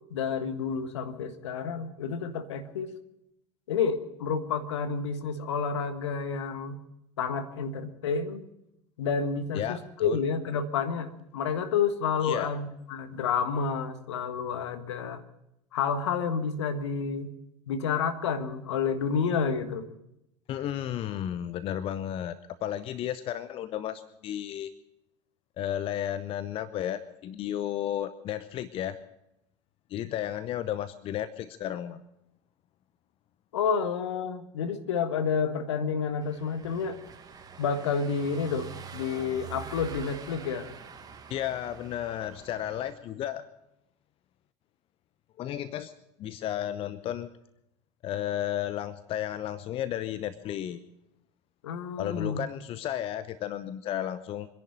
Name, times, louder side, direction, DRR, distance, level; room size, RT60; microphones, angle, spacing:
voice 1, 0.1-2.9 3.7-6.8 7.2-8.4 9.0-15.2 15.7-17.3 17.7-19.9 33.5-37.0 37.6-40.7 51.6-52.4, left 6 dB, 65° left, 9 dB, 1.5 m, -30 dB
voice 2, 9.5-10.2 12.2-12.5 20.5-24.7 25.6-29.0 29.9-32.0 41.3-43.4 45.4-45.9 46.2-47.3 48.0-50.8 52.0-54.5, left 11 dB, 35° left, 14 dB, 0.8 m, -33 dB
Car passing by / Engine, 36.2-42.9, right 6 dB, 25° right, 1.9 m, -45 dB
24.5 x 11.0 x 5.4 m, 0.84 s
figure-of-eight pair, 75°, 16 cm